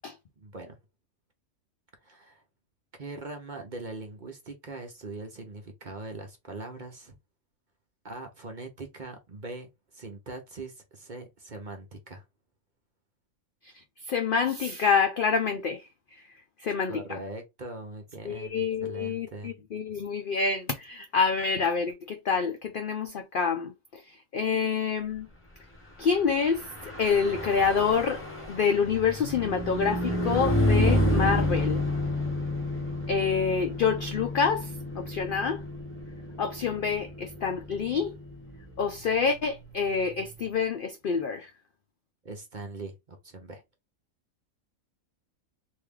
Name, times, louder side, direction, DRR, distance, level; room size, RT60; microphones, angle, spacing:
voice 1, 0.4-0.8 2.0-2.4 3.0-7.1 8.0-12.2 16.9-19.5 42.2-43.6, right 2 dB, 40° right, 0.8 m, -41 dB
voice 2, 14.1-15.9 16.6-17.2 18.2-25.3 26.0-28.2 28.5-31.8 33.1-35.6 36.4-38.1 38.8-41.5, left 6 dB, 75° left, 0.4 m, -27 dB
Car passing by / Truck, 26.4-40.1, left 1 dB, 10° left, 1.1 m, -30 dB
3.1 x 2.7 x 3.6 m
omnidirectional pair, 1.5 m